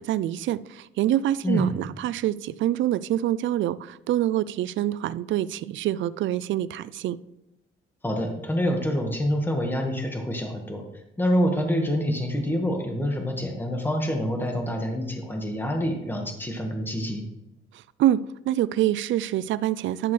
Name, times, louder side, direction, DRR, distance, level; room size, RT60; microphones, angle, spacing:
voice 1, 0.0-7.2 17.7-20.1, right 12 dB, 70° right, 17 dB, 0.4 m, -26 dB
voice 2, 8.0-10.8 11.2-17.2, equal, 10° left, 2 dB, 1.6 m, -26 dB
11.5 x 6.8 x 3.3 m, 0.90 s
cardioid pair, 90°, 20 cm